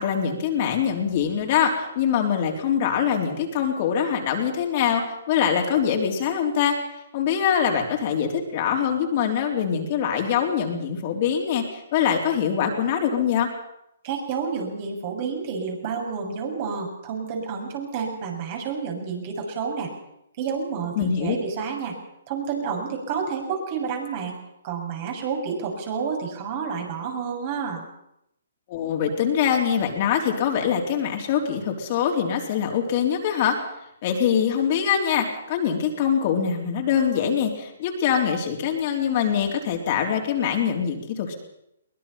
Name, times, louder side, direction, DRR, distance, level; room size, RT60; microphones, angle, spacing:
voice 1, 0.0-5.0 5.3-6.8 7.1-13.5 21.0-21.4 28.7-33.6 34.0-41.4, left 8 dB, 40° left, 2 dB, 3.8 m, -23 dB
voice 2, 14.0-19.9 20.4-22.0 22.3-24.4 24.6-27.9, right 6 dB, 40° right, 2 dB, 7.1 m, -29 dB
22.5 x 20.0 x 5.8 m, 0.81 s
hypercardioid pair, 135°, 0 cm